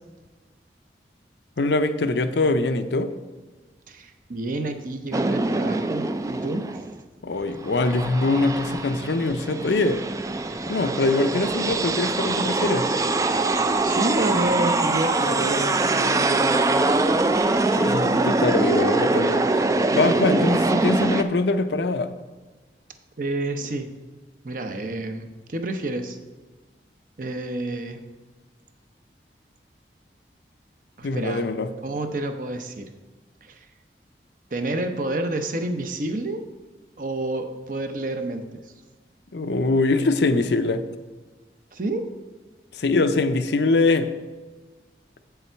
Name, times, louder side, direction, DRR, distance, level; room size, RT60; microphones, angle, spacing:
voice 1, 1.6-3.1 7.2-10.0 10.7-12.9 17.8-19.5 19.9-22.1 31.0-31.7 39.3-40.8 42.7-44.1, left 2 dB, 75° left, 10 dB, 0.6 m, -23 dB
voice 2, 3.9-6.1 6.3-6.9 13.8-16.9 23.2-23.9 24.4-26.2 27.2-28.0 31.0-31.5 31.8-32.9 33.4-33.7 34.5-36.4 37.0-38.7 41.7-42.0, right 2 dB, 50° right, 6 dB, 0.7 m, -29 dB
sound 1, 5.1-6.9 7.4-21.2, right 2 dB, 20° right, 0.3 m, -23 dB
7.9 x 6.9 x 4.5 m, 1.3 s
head